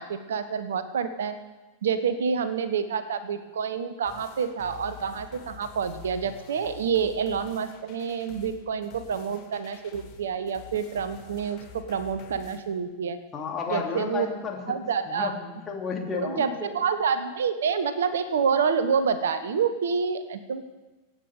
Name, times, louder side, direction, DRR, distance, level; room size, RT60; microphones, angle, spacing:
voice 1, 0.0-1.4 1.8-13.2 13.7-14.3 14.7-15.4 16.1-20.6, right 6 dB, 65° right, 12 dB, 0.9 m, -28 dB
sound 1, 4.0-12.6, left 9 dB, 40° left, 2.4 m, -48 dB
voice 2, 13.3-16.7, left 5 dB, 20° left, -1 dB, 2.9 m, -33 dB
24.0 x 9.0 x 4.9 m, 1.2 s
figure-of-eight pair, 90°, 0 cm